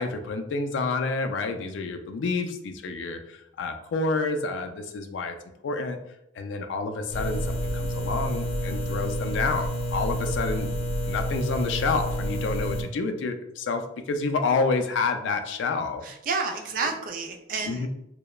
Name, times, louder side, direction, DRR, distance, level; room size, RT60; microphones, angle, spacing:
voice 1, 0.0-3.2 3.6-5.3 5.6-6.0 6.4-7.4 7.7-10.7 11.1-13.8 14.1-16.0 16.8-16.9 17.6-17.9, left 4 dB, 80° left, 6 dB, 0.3 m, -28 dB
sound 1, 7.1-12.8, equal, 30° left, 1.0 m, -29 dB
voice 2, 16.0-17.9, right 4 dB, 45° right, 4 dB, 0.3 m, -30 dB
2.9 x 2.0 x 2.2 m, 0.81 s
head